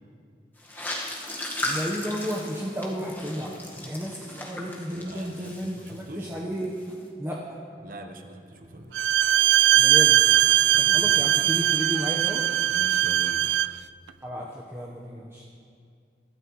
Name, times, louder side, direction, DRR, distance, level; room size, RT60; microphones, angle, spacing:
sound 1, 0.6-6.3 6.6-7.0, left 1 dB, 10° left, 1.6 m, -36 dB
voice 1, 1.6-6.8 7.2-7.6 9.7-10.2 10.8-12.4 14.2-15.4, equal, 15° right, -4 dB, 1.1 m, -33 dB
voice 2, 4.9-6.3 7.8-9.0 9.3-9.5 10.6-11.2 12.6-13.5, right 1 dB, 50° right, 5 dB, 1.1 m, -43 dB
Bowed string instrument, 8.9-13.8, right 13 dB, 90° right, 0.3 m, -20 dB
24.0 x 13.0 x 3.2 m, 2.3 s
head